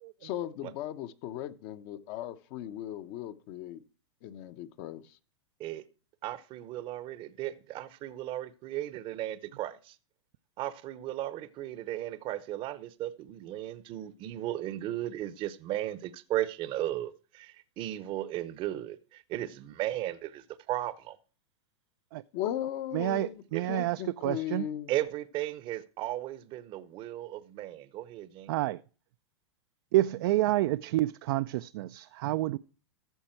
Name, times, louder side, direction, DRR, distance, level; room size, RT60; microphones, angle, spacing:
voice 1, 0.2-3.8 4.2-5.2 22.3-23.4 23.7-24.9, left 11 dB, 50° left, 0.9 m, -37 dB
voice 2, 6.2-10.0 10.6-21.2 23.5-23.7 24.9-28.5, right 14 dB, 35° right, 0.7 m, -36 dB
voice 3, 22.9-24.7 28.5-28.8 29.9-32.6, right 16 dB, 55° right, 0.4 m, -29 dB
13.5 x 6.9 x 4.4 m
hypercardioid pair, 120°, 14 cm